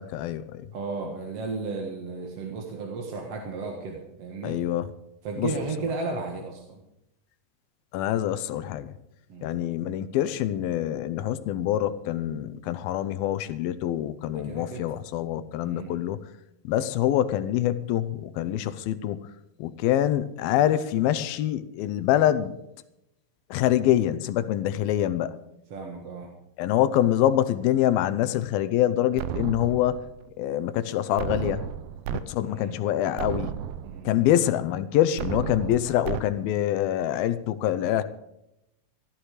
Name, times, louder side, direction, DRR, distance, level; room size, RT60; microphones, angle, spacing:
voice 1, 0.0-0.7 4.4-4.9 5.4-5.5 7.9-8.9 9.4-16.2 16.6-19.2 19.6-22.6 23.5-25.4 26.6-30.0 30.4-31.6 32.1-33.5 34.1-38.0, left 12 dB, 90° left, 13 dB, 2.7 m, -25 dB
voice 2, 0.7-4.6 5.2-6.8 9.3-9.6 14.3-14.8 15.6-15.9 25.7-26.3 32.4-32.8 33.8-34.2, right 4 dB, 50° right, 1 dB, 2.4 m, -34 dB
sound 1, 29.2-30.2 31.2-32.2 32.7-32.8 33.2-34.2 35.2-36.2, right 10 dB, 85° right, 2.6 m, -33 dB
16.5 x 13.0 x 4.9 m, 0.85 s
omnidirectional pair, 4.1 m